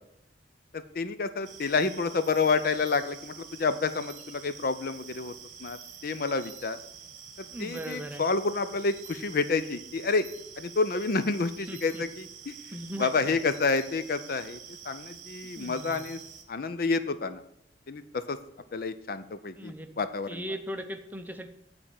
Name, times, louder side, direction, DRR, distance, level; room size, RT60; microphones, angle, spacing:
voice 1, 0.9-5.3 5.6-5.8 6.0-6.8 7.6-10.3 10.6-12.5 13.0-14.6 14.9-16.2 16.5-17.4 17.9-18.4 18.7-20.4, left 4 dB, 55° left, 11 dB, 0.5 m, -29 dB
sound 1, 1.4-16.4, right 7 dB, 45° right, 1.1 m, -47 dB
voice 2, 7.5-8.2 11.7-12.0 12.7-13.4 15.6-16.1 19.6-19.9 20.3-21.5, equal, 10° right, 6 dB, 0.7 m, -38 dB
8.8 x 4.4 x 7.0 m, 0.77 s
head